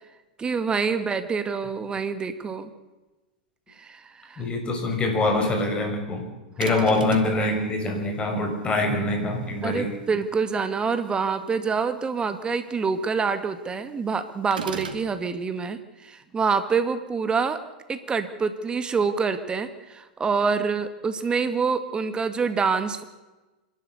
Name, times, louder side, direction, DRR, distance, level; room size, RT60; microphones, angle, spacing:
voice 1, 0.4-2.7 3.7-4.5 6.7-6.9 9.6-17.6 17.9-23.0, right 5 dB, 20° right, 10 dB, 2.1 m, -26 dB
voice 2, 4.4-6.3 6.6-9.9, left 2 dB, 25° left, 4 dB, 6.2 m, -24 dB
sound 1, 6.6-7.4 14.5-15.1, right 6 dB, 80° right, 2.5 m, -34 dB
26.0 x 12.0 x 8.3 m, 1.1 s
hypercardioid pair, 100°, 5 cm